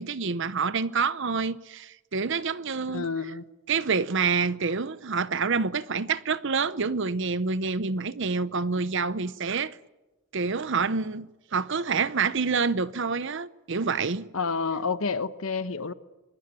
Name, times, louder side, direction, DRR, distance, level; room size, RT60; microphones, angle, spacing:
voice 1, 0.0-3.1 3.7-9.8 10.3-14.3, right 5 dB, 60° right, 0.8 m, -27 dB
voice 2, 2.9-3.4 14.3-15.9, left 4 dB, 75° left, 1.2 m, -29 dB
25.5 x 20.5 x 9.0 m
head